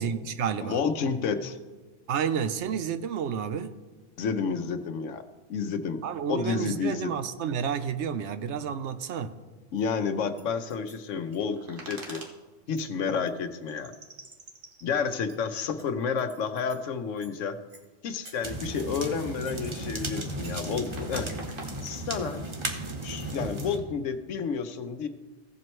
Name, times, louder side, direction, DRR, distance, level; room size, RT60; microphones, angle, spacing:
voice 1, 0.0-0.8 2.1-3.8 6.0-9.4, right 7 dB, 70° right, 11 dB, 0.9 m, -30 dB
voice 2, 0.7-1.6 4.2-5.2 5.5-6.0 6.3-7.1 9.7-12.2 12.7-13.9 14.8-17.6 18.0-21.3 21.8-22.4 23.0-25.1, left 6 dB, 90° left, 9 dB, 1.1 m, -30 dB
sound 1, 9.8-9.9 10.4-12.3 12.8-12.9 13.3-13.4 13.7-16.8 17.2-17.4 17.7-17.9 18.2-19.1 19.4-22.4, right 2 dB, 45° right, 1.5 m, -47 dB
sound 2, 18.4-23.8, right 2 dB, 25° right, 1.0 m, -35 dB
16.0 x 7.5 x 3.1 m, 1.3 s
omnidirectional pair, 1.3 m